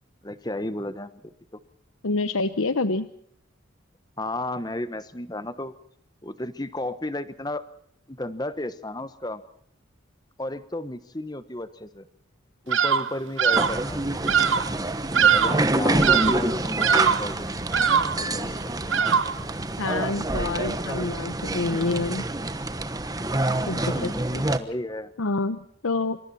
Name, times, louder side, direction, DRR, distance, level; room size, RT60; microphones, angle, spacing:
voice 1, 0.2-1.6 4.2-5.7 6.2-7.7 8.1-9.4 10.4-12.1 12.6-14.4 15.3-17.5 18.2-18.8 23.7-24.3 24.6-25.1, left 1 dB, 20° left, 12 dB, 1.1 m, -33 dB
voice 2, 2.0-3.1 19.8-22.3 23.7-24.4 25.2-26.2, left 3 dB, 85° left, 11 dB, 0.9 m, -27 dB
Bird vocalization bird call bird song, 12.7-13.1 13.4-13.8 14.3-14.7 15.1-15.7 16.0-16.5 16.8-17.3 17.7-18.2 18.9-19.4, right 7 dB, 70° right, 1.1 m, -21 dB
sound 1, 13.5-24.6, right 2 dB, 20° right, 1.1 m, -27 dB
27.0 x 25.5 x 4.3 m, 0.66 s
head